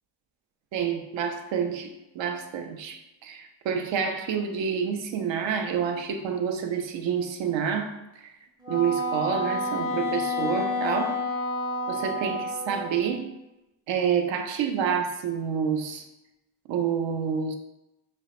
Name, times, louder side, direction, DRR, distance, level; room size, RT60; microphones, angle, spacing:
voice 1, 0.7-7.9 8.2-8.3 8.7-11.2 11.9-13.3 13.9-16.0 16.7-17.6, right 7 dB, 65° right, 5 dB, 0.5 m, -28 dB
Wind instrument woodwind instrument, 8.6-13.1, left 2 dB, 10° right, 0.6 m, -29 dB
2.3 x 2.1 x 2.8 m, 0.94 s
supercardioid pair, 60°, 50 cm